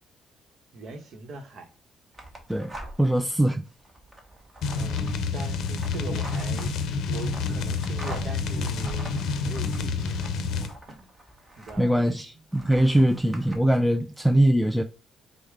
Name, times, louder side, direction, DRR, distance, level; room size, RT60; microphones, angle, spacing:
voice 1, 0.7-1.7 3.0-3.2 4.7-6.7 7.1-11.1 11.6-12.2, right 3 dB, 65° right, 0.9 m, -41 dB
sound 1, 2.1-3.2 3.7-12.1 12.5-13.6, right 1 dB, 20° right, 1.1 m, -44 dB
voice 2, 2.5-3.6 11.8-14.8, right 1 dB, ahead, 0.3 m, -22 dB
sound 2, 4.6-10.7, left 4 dB, 80° left, 0.5 m, -28 dB
4.8 x 2.1 x 3.4 m
cardioid pair, 90°, 0 cm